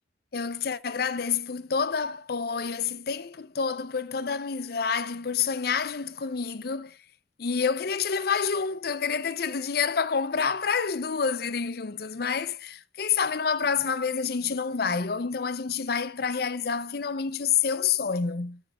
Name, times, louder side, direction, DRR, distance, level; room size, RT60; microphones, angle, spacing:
voice 1, 0.3-7.0 7.4-18.6, left 6 dB, 55° left, 0.5 m, -28 dB
19.5 x 7.0 x 2.3 m
head